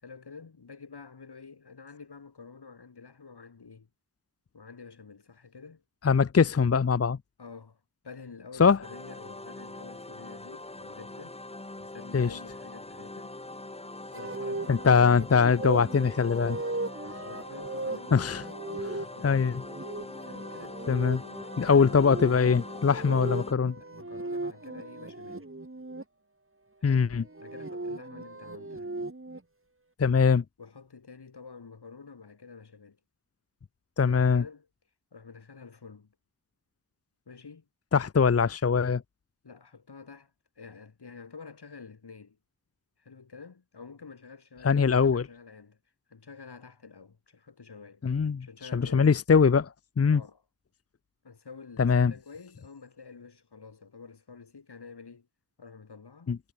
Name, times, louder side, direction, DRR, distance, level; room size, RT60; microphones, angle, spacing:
voice 1, 0.0-3.9 4.5-5.8 7.4-11.4 11.8-13.4 14.1-15.2 17.0-18.3 18.8-19.5 20.2-20.8 21.6-25.5 26.8-27.1 27.4-28.9 30.6-33.0 34.0-34.7 35.1-36.1 37.3-37.7 39.4-42.4 43.0-45.8 46.1-48.0 48.4-49.2 50.1-50.4 51.2-55.3 55.6-56.3, left 5 dB, 85° left, 6.1 m, -48 dB
voice 2, 6.0-7.2 8.6-8.8 12.1-12.3 14.7-16.6 18.1-18.4 18.8-19.0 19.2-19.6 20.9-21.2 21.6-23.7 26.8-27.2 30.0-30.4 34.0-34.4 37.9-39.0 44.6-45.2 48.0-48.5 48.7-50.2 51.8-52.1 56.3-56.4, left 5 dB, 40° left, 0.7 m, -22 dB
sound 1, 8.8-23.5, left 2 dB, 15° left, 1.0 m, -43 dB
sound 2, 14.1-26.0 27.2-29.4, right 2 dB, 35° right, 4.6 m, -38 dB
wide cardioid pair, 55°, 39 cm